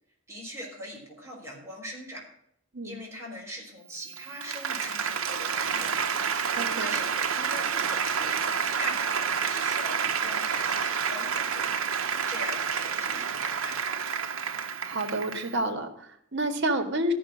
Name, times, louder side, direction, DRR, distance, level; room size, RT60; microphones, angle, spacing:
voice 1, 0.3-2.2 2.8-5.9 6.8-8.4 8.8-11.8 12.3-13.8, equal, 15° right, -3 dB, 4.3 m, -41 dB
Applause, 4.0-15.6, right 6 dB, 85° right, 1.1 m, -29 dB
voice 2, 6.5-6.9 14.8-17.1, right 1 dB, 60° right, 6 dB, 1.8 m, -29 dB
13.5 x 6.1 x 7.4 m, 0.71 s
head